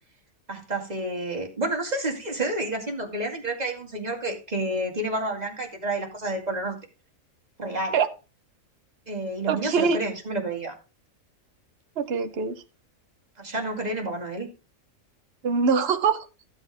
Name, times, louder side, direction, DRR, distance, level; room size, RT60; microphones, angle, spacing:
voice 1, 0.5-6.8 7.6-8.0 9.1-10.7 13.4-14.5, right 1 dB, 30° right, 1 dB, 2.3 m, -29 dB
voice 2, 9.5-10.0 12.0-12.6 15.4-16.2, right 5 dB, 50° right, 7 dB, 1.2 m, -23 dB
14.5 x 7.8 x 3.5 m, 0.32 s
omnidirectional pair, 1.4 m